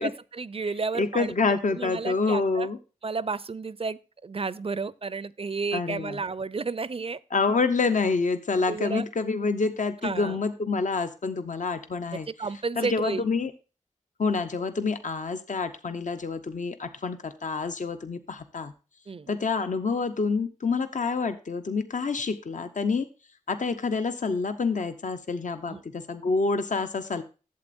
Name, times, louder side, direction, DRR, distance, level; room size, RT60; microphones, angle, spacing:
voice 1, 0.0-2.7 3.0-7.2 8.7-9.0 10.0-10.4 12.3-13.3 19.1-19.3 25.7-25.8, right 4 dB, 45° right, 0.4 m, -32 dB
voice 2, 0.9-2.8 5.7-6.2 7.3-12.3 12.8-13.5 14.2-18.7 19.3-23.1 23.5-27.2, left 4 dB, 65° left, 0.7 m, -27 dB
11.5 x 7.7 x 2.5 m
cardioid pair, 50°, 14 cm